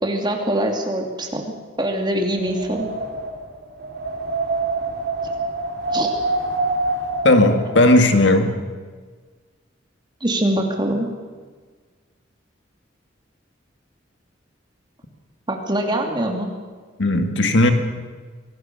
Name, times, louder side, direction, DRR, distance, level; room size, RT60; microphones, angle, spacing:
voice 1, 0.0-2.9 5.9-6.1 10.2-11.1 15.5-16.5, right 1 dB, 25° right, 2 dB, 2.7 m, -23 dB
Wind, 2.1-8.2, right 2 dB, 55° right, 4.0 m, -26 dB
voice 2, 7.2-8.5 17.0-17.7, left 2 dB, 65° left, 6 dB, 2.0 m, -15 dB
25.0 x 17.5 x 6.9 m, 1.5 s
head